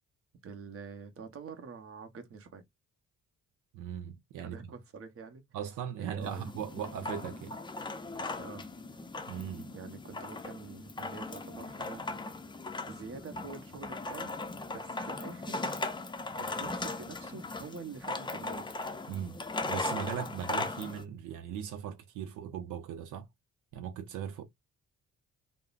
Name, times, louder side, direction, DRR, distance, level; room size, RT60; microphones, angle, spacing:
voice 1, 0.4-2.6 4.4-5.4 6.0-6.5 8.4-8.7 9.7-12.2 12.9-14.3 14.7-15.7 16.4-18.7, right 5 dB, 50° right, 0.9 m, -46 dB
voice 2, 3.7-4.7 5.5-7.6 9.3-9.7 19.1-23.3 23.7-24.4, right 9 dB, 85° right, 0.6 m, -39 dB
sound 1, 6.2-21.0, left 2 dB, 15° left, 0.5 m, -38 dB
3.5 x 2.0 x 2.4 m
cardioid pair, 90°, 30 cm